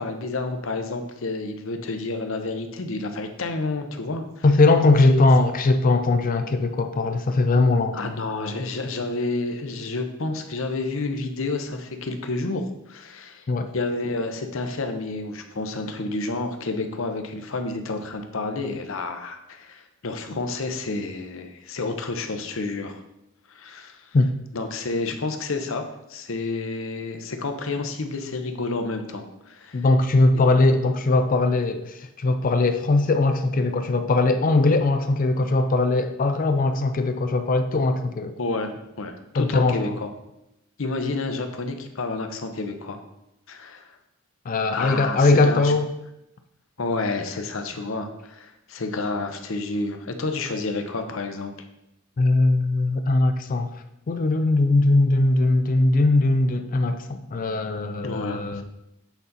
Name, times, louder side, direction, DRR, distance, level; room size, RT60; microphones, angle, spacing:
voice 1, 0.0-4.4 5.1-5.3 7.9-13.4 13.7-23.0 23.5-24.1 24.5-25.8 26.1-29.9 38.4-40.1 40.8-43.0 43.5-44.0 44.7-45.7 46.8-51.5 58.0-58.6, left 3 dB, 65° left, 6 dB, 0.8 m, -30 dB
voice 2, 4.4-8.0 13.5-13.7 24.1-24.3 29.7-38.3 39.4-40.0 44.5-45.9 52.2-53.7 54.1-58.6, left 2 dB, 40° left, 8 dB, 0.4 m, -20 dB
8.1 x 4.1 x 4.0 m, 0.86 s
head